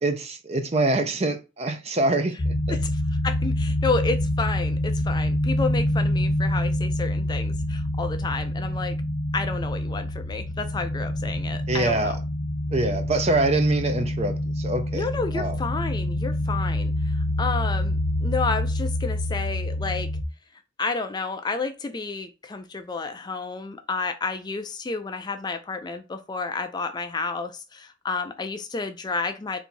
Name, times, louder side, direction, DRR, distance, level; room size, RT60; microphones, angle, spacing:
voice 1, 0.0-2.8 11.7-12.2 12.7-15.1 15.3-15.6, right 2 dB, 35° right, 0.6 m, -25 dB
sound 1, 2.4-20.2, left 1 dB, 45° left, 0.8 m, -26 dB
voice 2, 2.7-9.0 9.3-12.2 14.9-20.1 20.8-29.6, left 4 dB, 20° left, 0.3 m, -31 dB
4.0 x 2.7 x 4.4 m
head